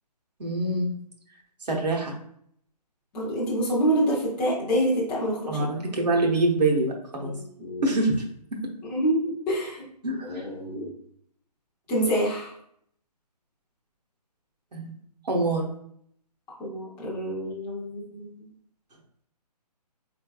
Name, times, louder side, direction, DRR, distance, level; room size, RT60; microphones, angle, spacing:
voice 1, 0.4-0.9 1.7-2.1 5.5-7.3 7.8-8.2 10.0-10.4 14.7-15.0 15.3-15.7, right 2 dB, 80° right, -1 dB, 1.0 m, -25 dB
voice 2, 3.1-5.7 7.2-7.9 8.9-9.8 10.2-10.9 11.9-12.5 16.6-18.3, right 1 dB, 5° left, -7 dB, 0.3 m, -27 dB
3.8 x 3.3 x 2.3 m, 0.68 s
figure-of-eight pair, 145°, 21 cm